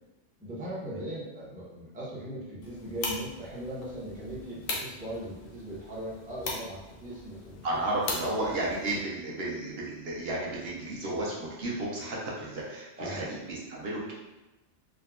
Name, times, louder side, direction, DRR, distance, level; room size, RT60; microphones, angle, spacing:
voice 1, 0.4-7.7 13.0-13.3, right 1 dB, 10° right, -7 dB, 0.4 m, -39 dB
sound 1, 2.6-9.0, left 3 dB, 80° left, 1.0 m, -40 dB
voice 2, 7.6-14.1, right 2 dB, 60° right, -4 dB, 0.8 m, -33 dB
3.5 x 2.1 x 2.3 m, 1.0 s
omnidirectional pair, 1.3 m